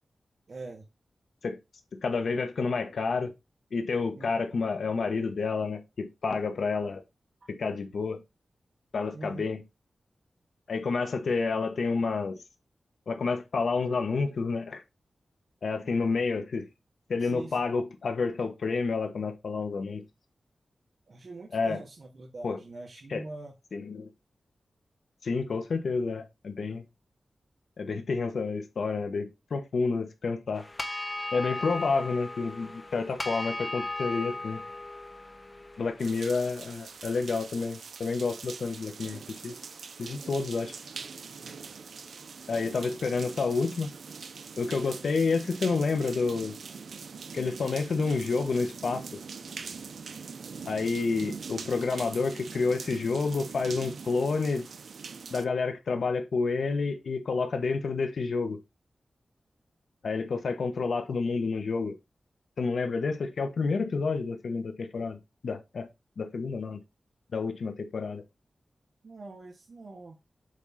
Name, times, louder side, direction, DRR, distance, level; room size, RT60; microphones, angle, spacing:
voice 1, 0.5-0.9 4.1-4.4 9.1-9.5 17.2-17.7 21.1-23.5 69.0-70.2, right 2 dB, 55° right, 1.4 m, -43 dB
voice 2, 2.0-3.3 3.7-7.0 7.5-8.2 8.9-9.6 10.7-12.4 13.1-14.8 15.6-16.7 17.1-20.0 21.5-21.8 22.4-22.6 23.1-23.2 23.7-24.1 25.2-26.8 27.8-30.6 31.3-34.6 35.8-39.5 40.0-40.7 42.5-43.9 44.6-46.5 47.3-49.0 50.7-54.7 55.3-58.6 60.0-61.9 62.6-65.2 65.4-65.9 66.2-66.8 67.3-68.2, left 4 dB, 80° left, 1.2 m, -29 dB
sound 1, 30.5-36.9, left 2 dB, 20° left, 1.3 m, -37 dB
sound 2, 36.0-55.4, right 5 dB, 85° right, 0.7 m, -43 dB
8.1 x 3.6 x 4.2 m
wide cardioid pair, 75°, 0 cm